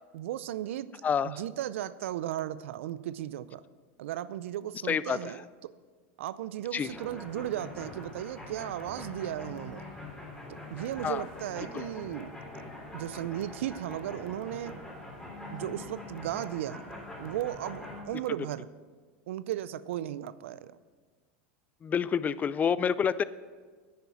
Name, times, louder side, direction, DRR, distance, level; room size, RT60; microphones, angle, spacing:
voice 1, 0.1-0.9 1.2-3.6 4.0-5.7 6.2-9.8 10.7-12.4 12.9-14.8 15.5-16.8 17.2-18.7 19.3-20.8, right 12 dB, 80° right, 17 dB, 0.5 m, -35 dB
voice 2, 1.0-1.4 4.8-5.3 6.7-6.9 11.0-11.2 11.7-11.8 21.8-23.2, left 7 dB, 25° left, 17 dB, 0.4 m, -28 dB
sound 1, 6.8-18.0, left 2 dB, 5° left, 4.3 m, -44 dB
10.5 x 9.4 x 6.1 m, 1.5 s
hypercardioid pair, 110°, 7 cm